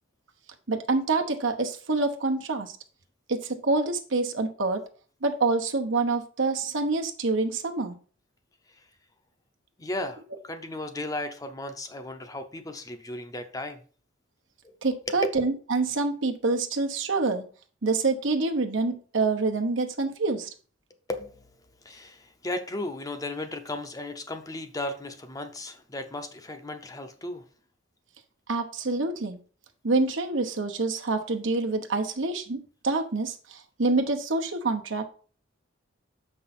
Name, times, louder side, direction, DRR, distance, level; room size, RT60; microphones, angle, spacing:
voice 1, 0.7-2.7 3.3-4.8 5.2-7.9 14.8-17.4 17.8-20.5 28.5-29.4 29.8-32.6 32.8-35.1, right 3 dB, 80° right, 4 dB, 1.0 m, -26 dB
voice 2, 9.8-13.8 14.6-14.8 15.1-15.2 21.1-21.3 21.8-27.4, left 2 dB, 20° left, 8 dB, 0.7 m, -35 dB
6.9 x 5.5 x 4.2 m, 0.40 s
head